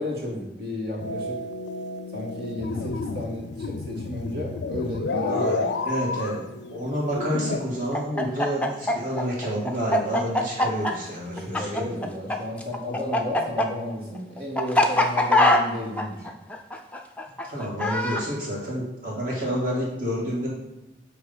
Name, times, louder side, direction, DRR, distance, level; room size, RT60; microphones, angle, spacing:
voice 1, 0.0-1.4 2.1-5.7 11.3-16.2, left 1 dB, 60° right, -3 dB, 2.0 m, -33 dB
sound 1, 1.0-7.6, left 3 dB, 85° left, 0.4 m, -31 dB
voice 2, 5.3-5.6 5.8-6.4 6.7-11.9 17.4-20.5, equal, 45° right, -5 dB, 2.2 m, -29 dB
Chicken rooster, 7.9-12.4 12.6-18.2, left 1 dB, 5° left, 0.4 m, -22 dB
7.9 x 2.9 x 5.5 m, 1.0 s
head